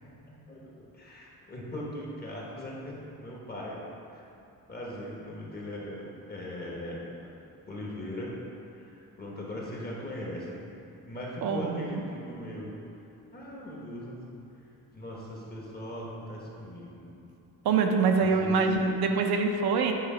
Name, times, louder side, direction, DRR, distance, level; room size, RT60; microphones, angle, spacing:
voice 1, 0.3-3.8 4.1-4.2 4.7-7.3 7.7-8.3 8.7-10.7 11.0-12.8 13.3-14.3 14.9-17.1 18.2-18.7, left 1 dB, 25° left, -4 dB, 1.1 m, -39 dB
voice 2, 11.4-12.0 17.6-19.9, right 4 dB, 75° right, 4 dB, 0.6 m, -25 dB
8.8 x 3.2 x 4.9 m, 2.7 s
wide cardioid pair, 170°, 38 cm